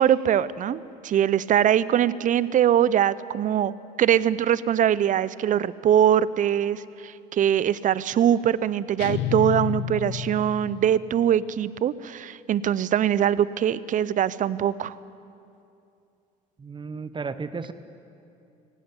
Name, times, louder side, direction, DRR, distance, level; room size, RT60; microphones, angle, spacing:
voice 1, 0.0-3.7 4.0-15.0, right 10 dB, 45° right, 19 dB, 0.6 m, -22 dB
sound 1, 9.0-11.0, left 10 dB, 70° left, 0.9 m, -30 dB
voice 2, 16.6-17.7, right 4 dB, 25° right, 13 dB, 1.0 m, -33 dB
17.0 x 16.5 x 9.8 m, 2.6 s
supercardioid pair, 85°, 18 cm